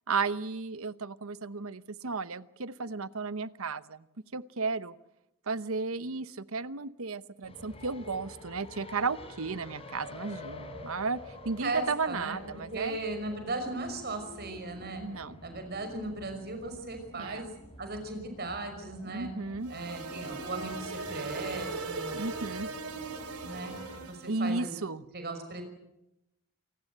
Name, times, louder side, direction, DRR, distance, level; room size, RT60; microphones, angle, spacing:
voice 1, 0.1-4.0 4.3-4.9 5.5-11.2 11.4-13.0 15.0-15.4 17.2-17.4 19.0-19.7 22.1-22.7 24.3-25.0, right 4 dB, 65° right, 15 dB, 0.9 m, -34 dB
sound 1, 7.4-24.0, left 2 dB, 25° left, 5.1 m, -48 dB
voice 2, 11.6-12.4 12.7-15.0 15.4-17.5 17.8-19.3 19.7-22.3 23.4-24.7 25.1-25.6, right 2 dB, 45° right, 7 dB, 5.8 m, -37 dB
sound 2, 19.6-24.4, right 4 dB, 80° right, 2.6 m, -39 dB
28.0 x 18.5 x 8.0 m, 0.87 s
head